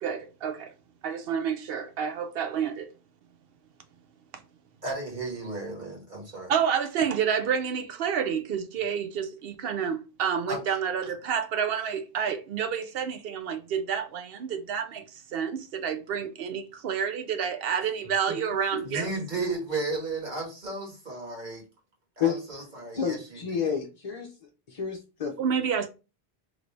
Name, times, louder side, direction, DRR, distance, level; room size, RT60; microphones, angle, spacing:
voice 1, 0.0-0.7 1.0-2.9 6.5-15.0 15.3-19.1 25.4-25.9, right 7 dB, 70° right, 0.7 m, -29 dB
voice 2, 4.8-6.5 10.5-10.6 18.3-18.4 18.7-21.6 22.2-23.6, right 2 dB, 50° right, 1.6 m, -34 dB
voice 3, 23.0-24.3 24.7-25.4, left 7 dB, 45° left, 0.6 m, -29 dB
3.1 x 2.6 x 3.2 m
omnidirectional pair, 1.0 m